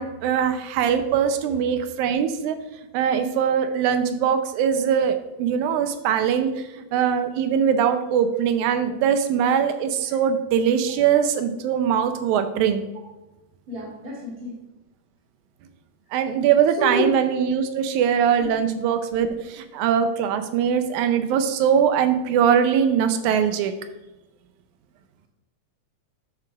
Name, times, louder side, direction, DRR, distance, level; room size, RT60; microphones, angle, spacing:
voice 1, 0.0-2.6 2.9-12.8 16.1-23.7, right 8 dB, 90° right, 8 dB, 2.1 m, -22 dB
voice 2, 13.7-14.5 16.8-17.0, left 2 dB, 30° right, -8 dB, 2.9 m, -29 dB
11.0 x 7.6 x 2.4 m, 1.0 s
omnidirectional pair, 3.4 m